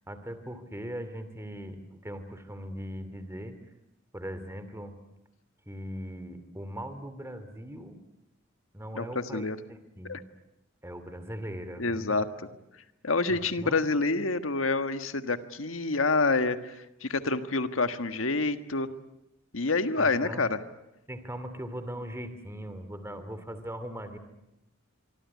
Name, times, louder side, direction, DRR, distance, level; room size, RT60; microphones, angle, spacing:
voice 1, 0.1-3.6 4.1-5.0 5.7-8.0 8.7-10.2 10.8-12.3 13.3-13.8 20.0-20.5 21.1-24.2, equal, 15° right, 10 dB, 2.6 m, -40 dB
voice 2, 11.8-12.3 13.0-16.7 17.0-18.9 19.5-20.6, left 3 dB, 90° left, 9 dB, 1.6 m, -27 dB
25.0 x 24.5 x 9.6 m, 0.90 s
head